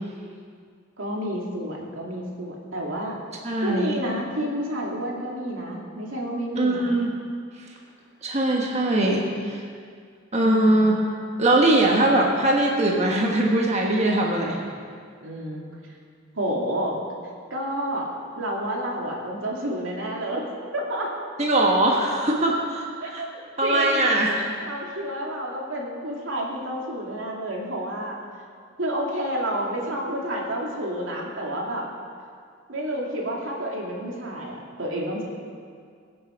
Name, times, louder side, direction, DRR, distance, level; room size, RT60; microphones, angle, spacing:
voice 1, 1.0-3.2 3.6-7.0 10.4-10.9 15.2-15.7 16.4-17.0 17.5-18.1 18.4-20.5 20.7-21.1 23.0-23.3 23.6-24.2 24.6-28.2 28.8-31.8 32.7-35.2, right 1 dB, 85° right, -2 dB, 2.5 m, -30 dB
voice 2, 3.4-4.0 6.6-7.1 8.2-9.6 10.3-11.0 11.4-14.6 21.4-22.9 23.1-23.2 23.6-24.5, right 1 dB, 35° right, -1 dB, 1.3 m, -21 dB
22.0 x 7.8 x 5.1 m, 2.1 s
head